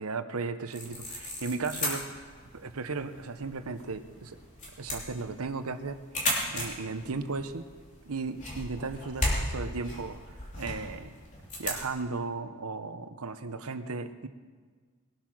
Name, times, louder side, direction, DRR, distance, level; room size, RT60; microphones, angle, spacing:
voice 1, 0.0-2.1 2.5-4.4 4.8-6.0 6.5-7.7 8.1-10.2 10.5-11.1 11.6-14.3, right 4 dB, 85° right, 10 dB, 0.9 m, -35 dB
sound 1, 0.7-11.8, left 1 dB, 35° left, 3.2 m, -36 dB
20.5 x 8.7 x 6.2 m, 1.5 s
head